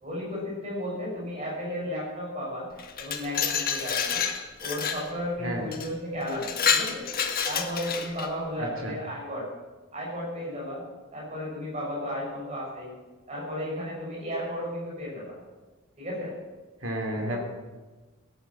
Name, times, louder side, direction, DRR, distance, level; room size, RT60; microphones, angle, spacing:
voice 1, 0.0-2.7 3.0-4.2 4.6-7.1 7.4-9.5 9.9-10.8 11.1-12.9 13.3-15.4 16.0-16.3 17.3-17.4, equal, 35° right, -5 dB, 7.0 m, -34 dB
Glass, 2.8-5.1 5.7-5.9 6.3-8.3, left 7 dB, 45° left, 1.6 m, -28 dB
voice 2, 8.6-9.0 16.8-17.4, right 1 dB, 70° right, 1 dB, 3.0 m, -32 dB
17.5 x 10.0 x 7.5 m, 1.2 s
head